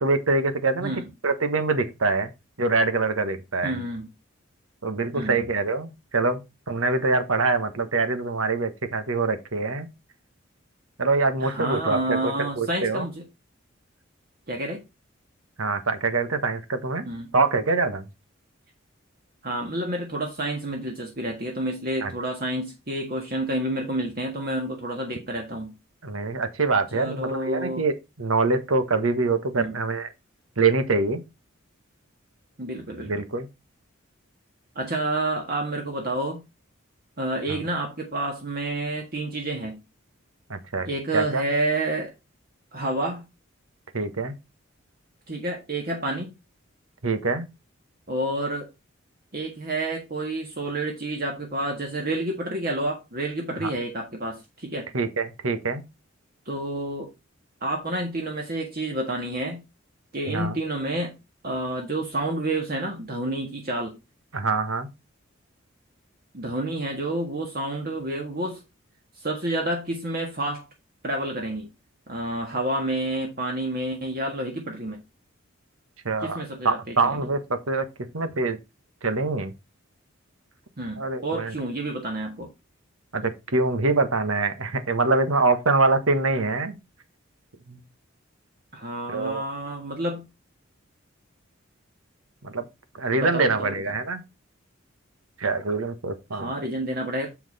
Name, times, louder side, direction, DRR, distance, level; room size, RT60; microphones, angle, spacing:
voice 1, 0.0-2.3 2.6-3.8 4.8-9.9 11.0-13.1 15.6-17.1 17.3-18.1 22.0-22.1 26.0-30.1 30.6-31.2 33.0-33.5 37.5-37.6 40.5-40.9 41.1-41.4 43.9-44.3 47.0-47.5 53.6-53.7 54.9-55.8 60.3-60.6 64.3-64.9 76.0-77.9 78.1-78.6 79.0-79.5 81.0-81.5 83.1-86.8 87.7-87.8 89.1-89.4 92.4-92.6 92.9-94.2 95.4-96.5, right 3 dB, 85° right, 1.4 m, -24 dB
voice 2, 3.6-4.1 5.1-5.4 11.4-13.2 14.5-14.8 17.0-17.3 19.4-25.8 26.9-27.8 29.5-29.8 32.6-33.2 34.7-36.4 37.2-39.8 40.9-42.1 42.7-43.3 45.3-46.3 48.1-48.7 49.3-54.9 56.4-57.1 57.6-59.6 60.1-61.1 61.4-63.9 66.3-68.6 69.2-70.7 71.0-71.7 72.1-75.0 76.2-77.2 80.8-82.5 88.7-90.2 93.2-93.9 96.3-97.3, right 1 dB, 45° right, 1.6 m, -29 dB
7.3 x 5.9 x 4.1 m
head